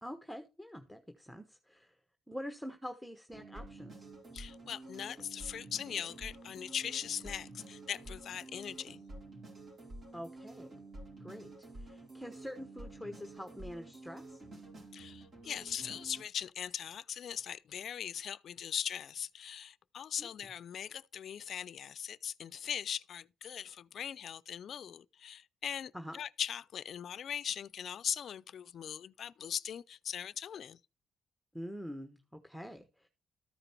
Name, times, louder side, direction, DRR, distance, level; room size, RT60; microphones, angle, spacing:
voice 1, 0.0-1.9 2.3-4.1 10.1-10.7 11.2-14.4 20.2-20.3 25.9-26.2 31.5-33.1, equal, ahead, 1.0 m, -45 dB
sound 1, 3.3-16.2, right 2 dB, 55° right, 4.5 m, -50 dB
voice 2, 4.3-9.0 14.9-30.8, left 8 dB, 65° left, 0.4 m, -40 dB
13.5 x 5.1 x 4.4 m
cardioid pair, 70°, 0 cm